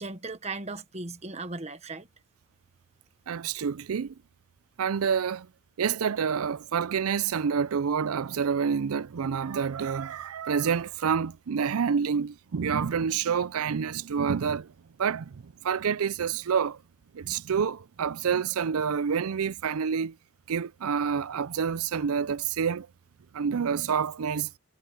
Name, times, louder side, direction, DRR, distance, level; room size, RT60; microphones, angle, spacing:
voice 1, 0.0-2.1, right 3 dB, 30° right, 1.2 m, -37 dB
voice 2, 3.3-4.1 4.8-5.5 5.8-14.7 15.0-16.8 17.1-20.2 20.5-22.9 23.3-24.5, right 6 dB, 80° right, 0.5 m, -28 dB
head